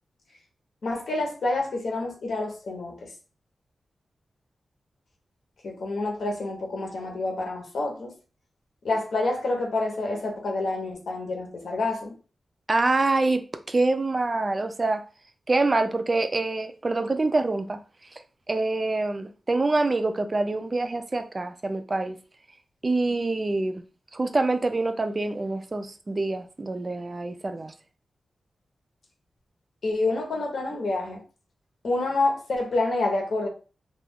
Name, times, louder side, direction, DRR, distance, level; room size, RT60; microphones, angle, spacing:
voice 1, 0.8-3.1 5.6-8.1 8.8-12.1 29.8-31.2 31.8-33.5, left 2 dB, 80° left, 0.8 m, -28 dB
voice 2, 12.7-15.0 15.5-17.8 18.5-22.2 22.8-23.8 24.1-27.7, right 2 dB, 30° right, 0.3 m, -25 dB
2.3 x 2.2 x 3.4 m
wide cardioid pair, 130°, 0 cm